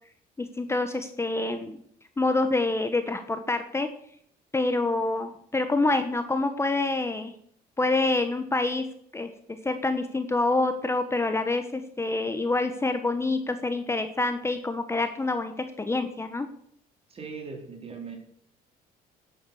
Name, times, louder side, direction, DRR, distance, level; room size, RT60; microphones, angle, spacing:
voice 1, 0.4-1.8 2.2-3.9 4.5-7.3 7.8-8.8 9.1-9.3 9.6-16.5, left 2 dB, 15° left, 8 dB, 1.1 m, -27 dB
voice 2, 17.1-18.2, right 5 dB, 35° right, 3 dB, 3.9 m, -39 dB
11.0 x 9.1 x 6.9 m, 0.68 s
cardioid pair, 110°, 17 cm